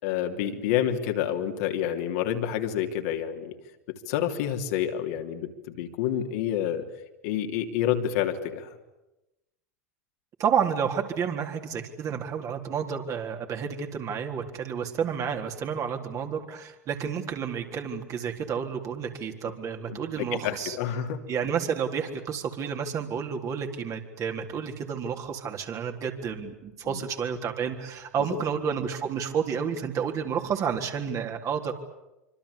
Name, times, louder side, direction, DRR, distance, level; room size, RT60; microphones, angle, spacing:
voice 1, 0.0-3.5 3.9-6.9 7.2-8.8 19.5-19.6 19.9-21.2 26.8-27.0, left 10 dB, 60° left, 3 dB, 3.1 m, -29 dB
voice 2, 10.4-20.8 21.3-31.7, right 7 dB, 35° right, 4 dB, 3.8 m, -30 dB
26.0 x 25.0 x 8.5 m, 0.97 s
hypercardioid pair, 90°, 9 cm